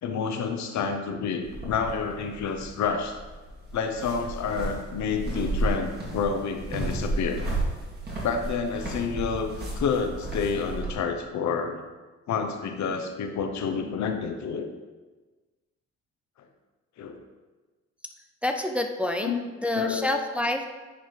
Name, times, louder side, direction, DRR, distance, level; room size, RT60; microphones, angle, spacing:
voice 1, 0.0-3.2 3.7-7.4 8.2-11.8 12.3-14.7 17.0-17.2 19.2-19.5 19.7-20.1, left 5 dB, 65° left, 5 dB, 0.8 m, -29 dB
sound 1, 1.4-10.9, right 2 dB, 35° right, 2.2 m, -33 dB
voice 2, 18.4-19.3 19.6-20.7, left 1 dB, 5° right, 4 dB, 0.5 m, -27 dB
9.3 x 3.4 x 4.5 m, 1.3 s
cardioid pair, 90°, 30 cm